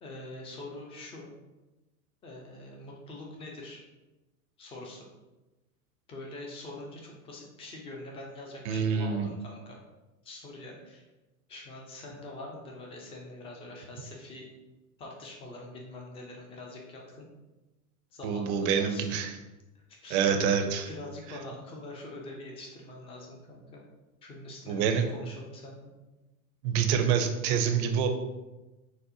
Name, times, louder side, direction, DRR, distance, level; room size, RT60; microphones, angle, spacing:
voice 1, 0.0-1.3 2.2-3.8 4.6-5.1 6.1-9.8 10.2-11.1 11.5-14.4 15.0-17.3 18.1-19.0 19.7-20.2 20.9-23.8 24.2-25.9, left 2 dB, 15° left, 0 dB, 0.3 m, -44 dB
voice 2, 8.7-9.3 18.2-19.3 20.1-20.9 24.7-25.1 26.6-28.1, right 7 dB, 50° right, 5 dB, 0.5 m, -26 dB
4.1 x 2.1 x 2.6 m, 1.1 s
hypercardioid pair, 110°, 43 cm